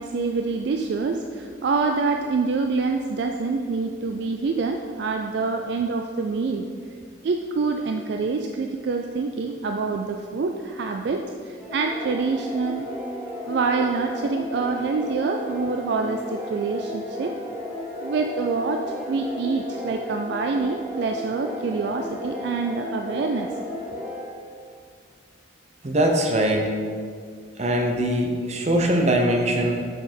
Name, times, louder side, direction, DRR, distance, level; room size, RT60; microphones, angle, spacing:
voice 1, 0.0-6.7 7.2-12.9 13.5-17.3 18.0-23.5, right 4 dB, 55° right, 4 dB, 0.3 m, -26 dB
sound 1, 11.6-24.6, left 1 dB, 10° right, 1.0 m, -34 dB
voice 2, 25.8-26.8 27.6-29.9, right 1 dB, 35° right, 2 dB, 0.7 m, -22 dB
5.9 x 5.7 x 4.3 m, 2.1 s
head